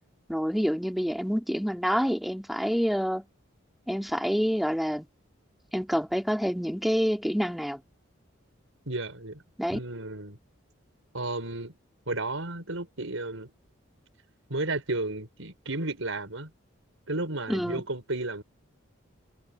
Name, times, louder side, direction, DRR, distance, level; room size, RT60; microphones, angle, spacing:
voice 1, 0.3-3.3 3.9-5.1 5.7-7.8 9.6-9.8 17.5-17.8, equal, ahead, 3.0 m, -27 dB
voice 2, 8.9-9.4 9.7-10.4 11.1-11.7 12.1-13.5 14.5-16.5 17.1-18.4, right 2 dB, 90° right, 5.8 m, -33 dB
head